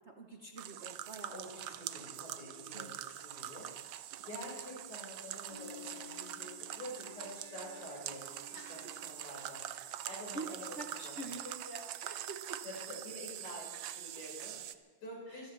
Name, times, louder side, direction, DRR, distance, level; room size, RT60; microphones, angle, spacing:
voice 1, 0.1-1.4 1.9-2.1 2.7-2.9 8.5-8.9 10.0-10.5 10.7-12.6 15.3-15.5, right 2 dB, 40° right, 2 dB, 1.1 m, -47 dB
sound 1, 0.6-14.7, right 12 dB, 70° right, 1.2 m, -44 dB
voice 2, 1.3-3.7 4.2-9.7 10.0-10.7 10.9-11.2 12.6-15.5, left 1 dB, 90° left, -5 dB, 6.7 m, -48 dB
sound 2, 5.4-10.0, right 2 dB, 25° left, 1.5 m, -59 dB
Bass guitar, 5.5-8.1, left 13 dB, 15° right, 5.7 m, -55 dB
24.5 x 14.5 x 3.4 m, 1.4 s
omnidirectional pair, 2.4 m